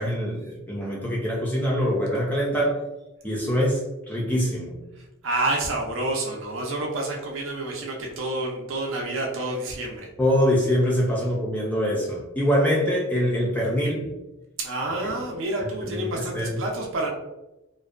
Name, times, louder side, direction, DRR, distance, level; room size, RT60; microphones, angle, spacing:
voice 1, 0.0-2.8 3.2-4.7 10.2-14.1 15.0-15.1 15.9-16.6, equal, 5° left, -4 dB, 0.4 m, -24 dB
voice 2, 5.0-10.1 14.6-17.1, right 2 dB, 65° right, -1 dB, 0.4 m, -29 dB
2.5 x 2.1 x 2.3 m, 0.97 s
head